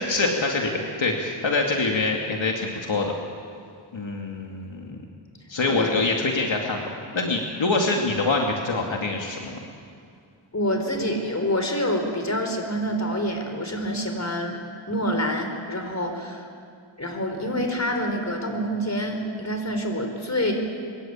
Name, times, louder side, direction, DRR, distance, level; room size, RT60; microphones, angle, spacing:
voice 1, 0.1-0.7 1.0-3.1 3.9-5.0 5.5-6.8 7.1-9.6, left 3 dB, 70° left, 1 dB, 2.6 m, -25 dB
voice 2, 5.6-5.9 10.5-14.6 14.9-16.5 17.0-20.5, equal, 35° left, 4 dB, 4.5 m, -27 dB
24.5 x 23.5 x 9.0 m, 2.3 s
wide cardioid pair, 90°, 47 cm